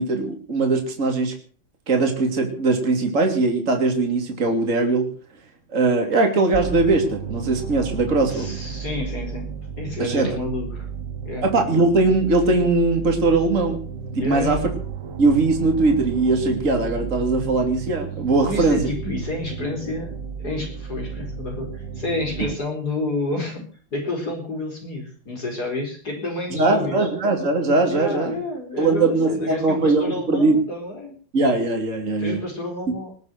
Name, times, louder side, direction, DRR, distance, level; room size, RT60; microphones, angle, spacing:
voice 1, 0.0-1.3 1.9-5.1 5.7-8.5 10.0-10.3 11.4-13.8 14.1-14.6 15.2-18.8 26.5-28.4 28.8-30.6 31.3-32.4, right 3 dB, 40° right, 3 dB, 3.1 m, -20 dB
sound 1, 6.5-22.5, right 6 dB, 60° right, 2.0 m, -33 dB
voice 2, 8.3-9.4 9.8-10.9 11.2-11.4 14.2-14.6 18.4-20.1 20.4-23.6 23.9-27.1 27.9-31.1 32.2-33.1, left 2 dB, 50° left, 0 dB, 5.0 m, -29 dB
20.0 x 8.2 x 7.9 m, 0.41 s
omnidirectional pair, 2.1 m